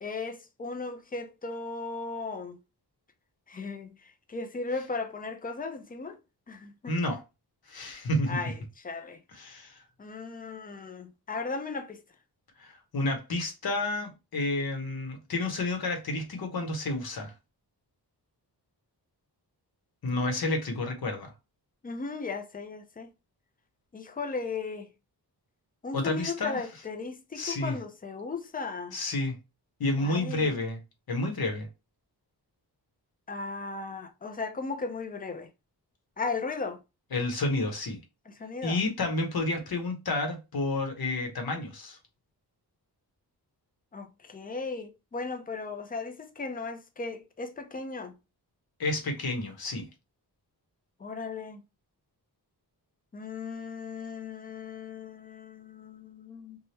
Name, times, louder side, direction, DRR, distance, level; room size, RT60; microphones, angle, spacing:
voice 1, 0.0-2.6 3.5-6.2 6.5-7.0 8.3-8.5 8.8-9.2 10.0-12.0 21.8-23.1 23.9-24.9 25.8-29.0 30.0-30.5 33.3-35.5 36.2-36.8 38.3-38.8 43.9-48.1 51.0-51.6 53.1-56.6, left 4 dB, 25° left, 0.4 m, -36 dB
voice 2, 6.9-7.2 7.7-8.4 9.3-9.8 12.6-17.3 20.0-21.3 25.9-26.6 27.3-27.8 28.9-29.3 29.8-30.8 31.1-31.7 37.1-38.0 38.6-42.0 48.8-49.9, left 2 dB, 60° left, 0.9 m, -30 dB
3.2 x 2.2 x 2.7 m
wide cardioid pair, 160°, 40 cm